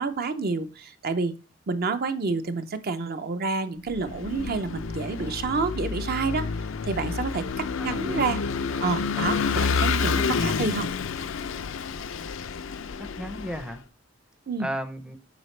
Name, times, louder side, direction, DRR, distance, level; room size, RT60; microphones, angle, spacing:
voice 1, 0.0-1.4 1.7-6.5 6.9-8.4 8.8-10.9 14.5-14.7, right 4 dB, 50° right, 9 dB, 0.6 m, -28 dB
Vehicle / Engine, 3.9-13.7, left 5 dB, 85° left, 0.5 m, -29 dB
voice 2, 7.7-8.4 13.0-13.8 14.6-15.2, equal, 5° right, 9 dB, 0.5 m, -35 dB
7.8 x 4.9 x 3.2 m, 0.34 s
head